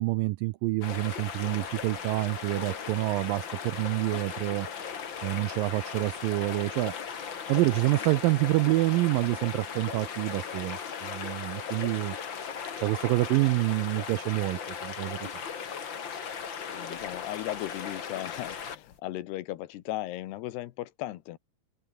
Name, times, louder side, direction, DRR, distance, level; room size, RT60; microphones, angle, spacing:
voice 1, 0.0-4.7 5.2-12.2 12.8-15.4, right 20 dB, 90° right, 2.0 m, -27 dB
sound 1, 0.8-19.0, left 7 dB, 40° left, 1.8 m, -37 dB
voice 2, 16.7-21.4, left 15 dB, 85° left, 3.2 m, -36 dB
omnidirectional pair, 4.6 m